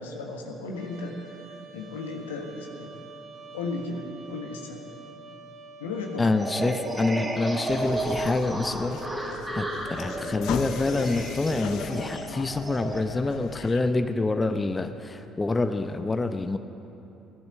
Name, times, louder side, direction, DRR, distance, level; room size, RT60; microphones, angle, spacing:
voice 1, 0.0-2.9 3.5-4.8 5.8-6.4, left 3 dB, 80° left, 2 dB, 1.4 m, -35 dB
Trumpet, 0.7-7.6, right 4 dB, 55° right, 1.1 m, -47 dB
voice 2, 6.2-9.0 9.5-16.6, left 2 dB, 25° left, 8 dB, 0.8 m, -27 dB
sound 1, 6.4-13.0, right 1 dB, 20° right, 3.0 m, -33 dB
sound 2, 7.7-13.8, left 8 dB, 60° left, 0.6 m, -37 dB
17.0 x 12.0 x 6.7 m, 2.8 s
figure-of-eight pair, 50°, 0 cm